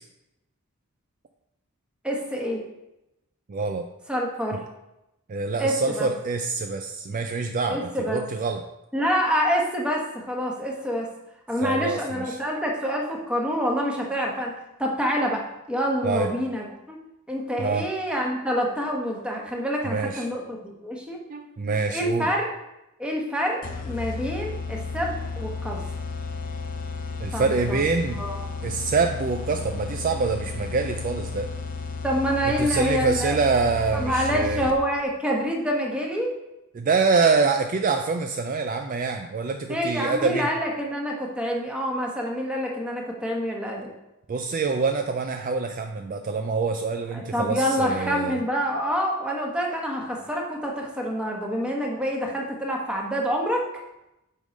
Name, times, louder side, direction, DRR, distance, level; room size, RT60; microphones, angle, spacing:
voice 1, 2.0-2.6 4.1-4.6 5.6-6.1 7.7-8.2 8.9-11.1 11.5-14.5 14.8-17.0 17.3-21.2 21.9-22.5 23.0-25.8 27.3-27.8 28.2-28.5 32.0-33.4 33.9-36.3 39.7-43.9 47.1-53.6, equal, 5° right, -1 dB, 1.1 m, -27 dB
voice 2, 3.5-3.9 5.3-8.6 11.5-12.4 16.0-16.3 17.6-17.9 19.8-20.3 21.3-22.3 27.2-28.2 28.6-31.5 32.4-34.7 36.7-40.5 44.3-48.4, right 4 dB, 40° right, 5 dB, 0.4 m, -25 dB
sound 1, 23.6-35.0, left 4 dB, 40° left, 0.6 m, -33 dB
8.1 x 3.8 x 5.2 m, 0.92 s
head